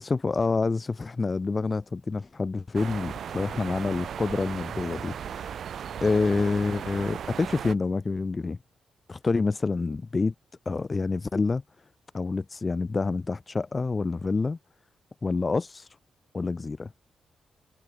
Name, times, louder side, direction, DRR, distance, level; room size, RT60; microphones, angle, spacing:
voice 1, 0.0-5.5 6.0-8.6 9.1-10.3 10.6-11.6 12.1-14.6 15.2-15.9 16.3-16.9, left 3 dB, 35° left, 6.7 m, -27 dB
sound 1, 2.7-7.7, right 8 dB, 70° right, 4.8 m, -36 dB
cardioid pair, 75°, 0 cm